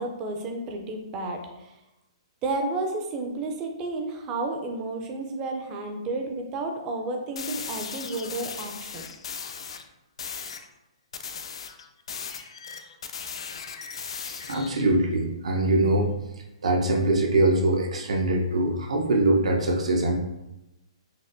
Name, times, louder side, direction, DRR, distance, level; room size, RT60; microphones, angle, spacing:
voice 1, 0.0-1.7 2.4-9.1, right 2 dB, 15° right, 3 dB, 0.3 m, -31 dB
sound 1, 7.4-9.8 10.2-10.7 11.1-14.8, left 6 dB, 65° left, 0.3 m, -37 dB
voice 2, 14.2-16.1 16.6-20.2, right 2 dB, 85° right, 1 dB, 0.6 m, -23 dB
4.1 x 2.2 x 2.5 m, 0.93 s
hypercardioid pair, 170°, 3 cm